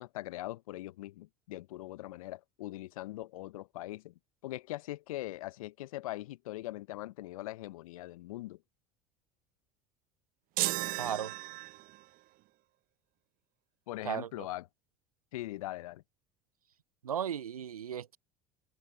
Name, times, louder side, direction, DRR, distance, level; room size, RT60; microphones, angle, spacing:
voice 1, 0.0-4.1 4.4-8.6 13.9-14.7 15.3-16.0, left 17 dB, 75° left, 0.9 m, -41 dB
sound 1, 10.6-12.1, right 19 dB, 55° right, 0.8 m, -34 dB
voice 2, 11.0-11.3 14.0-14.3 17.0-18.2, right 9 dB, 90° right, 0.5 m, -35 dB
open air
hypercardioid pair, 70°, 18 cm